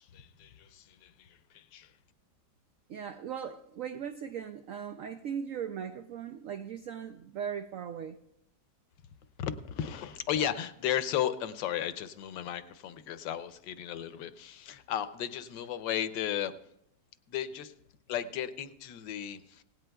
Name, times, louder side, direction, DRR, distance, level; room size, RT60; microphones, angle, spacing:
voice 1, 0.0-1.9 9.4-16.5 17.3-17.7 18.1-19.6, left 10 dB, 75° left, 1.3 m, -35 dB
voice 2, 2.9-8.2, right 8 dB, 85° right, 0.7 m, -38 dB
17.5 x 16.5 x 2.3 m
omnidirectional pair, 2.0 m